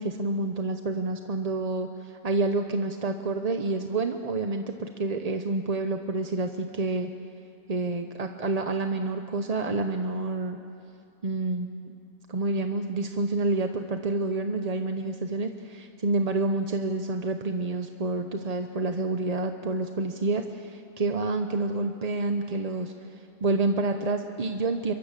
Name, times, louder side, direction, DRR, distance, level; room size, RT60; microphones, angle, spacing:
voice 1, 0.0-7.1 7.7-10.6 11.2-11.9 12.3-24.9, right 3 dB, 35° right, 6 dB, 0.8 m, -28 dB
27.5 x 23.0 x 7.5 m, 2.6 s
omnidirectional pair, 1.4 m